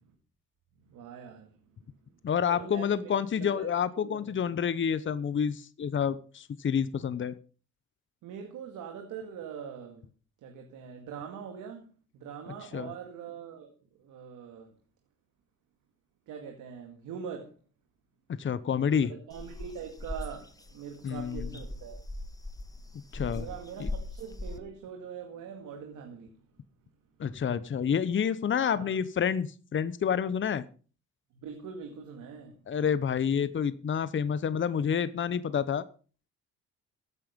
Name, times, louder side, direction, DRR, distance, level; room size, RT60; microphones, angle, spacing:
voice 1, 0.9-2.0 2.5-4.4 8.2-10.1 10.4-14.7 16.3-17.6 19.0-22.0 23.3-26.4 28.6-29.0 31.3-32.6, right 7 dB, 85° right, 2.2 m, -43 dB
voice 2, 2.2-7.3 12.7-12.9 18.3-19.1 21.0-21.5 23.1-23.5 23.8-23.9 27.2-30.6 32.7-35.8, left 7 dB, 40° left, 0.9 m, -28 dB
sound 1, 19.3-24.6, left 2 dB, 10° left, 1.5 m, -39 dB
15.5 x 9.0 x 5.3 m
cardioid pair, 90°, 30 cm